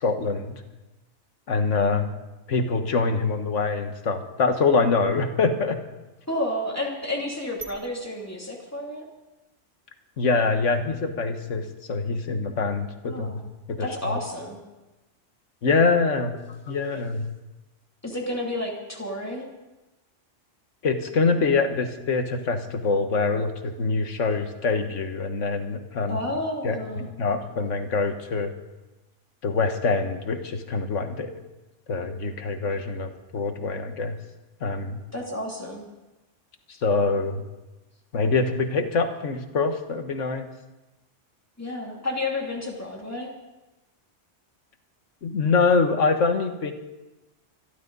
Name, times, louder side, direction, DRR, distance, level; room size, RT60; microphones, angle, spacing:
voice 1, 0.0-0.6 1.5-2.1 2.5-5.8 10.2-13.4 13.7-14.2 15.6-16.4 16.7-17.3 20.8-26.2 26.6-28.5 29.4-31.3 31.9-34.2 34.6-35.0 36.7-37.4 38.1-40.5 45.2-46.7, left 4 dB, 85° left, 7 dB, 1.7 m, -24 dB
voice 2, 6.3-9.0 13.0-13.4 13.8-14.6 18.0-19.5 26.1-27.1 35.1-35.8 41.6-43.3, left 1 dB, 10° left, -2 dB, 2.8 m, -31 dB
25.0 x 12.0 x 4.0 m, 1.0 s
omnidirectional pair, 1.2 m